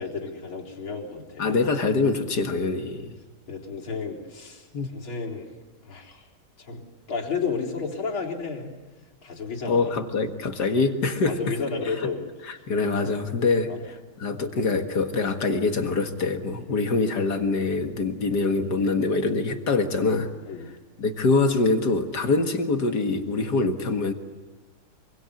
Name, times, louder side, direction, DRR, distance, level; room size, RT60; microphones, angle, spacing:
voice 1, 0.0-1.6 3.5-5.5 5.9-6.2 6.6-6.8 7.1-8.7 9.2-9.9 11.2-12.3 13.7-13.8 16.7-16.8 20.5-20.7, left 5 dB, 75° left, -2 dB, 4.8 m, -32 dB
voice 2, 1.4-3.2 4.7-4.9 9.7-11.4 12.4-13.7 14.2-20.3 21.0-24.1, left 3 dB, 50° left, 6 dB, 2.2 m, -24 dB
26.5 x 24.0 x 8.5 m, 1.3 s
omnidirectional pair, 2.3 m